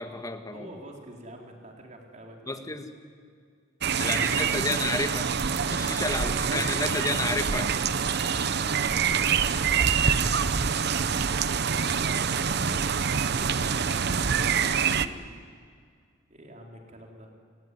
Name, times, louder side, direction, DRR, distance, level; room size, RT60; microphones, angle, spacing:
voice 1, 0.0-0.7 2.5-2.9 4.0-5.3 5.7-7.7, left 2 dB, 20° left, 6 dB, 1.9 m, -31 dB
voice 2, 0.5-2.6 4.6-4.8 6.0-6.7 8.4-10.2 11.3-13.0 13.3-15.4 16.3-17.3, right 1 dB, 40° right, 1 dB, 4.2 m, -46 dB
sound 1, 3.8-15.1, right 6 dB, 60° right, 0.8 m, -26 dB
29.5 x 17.5 x 10.0 m, 2.1 s
head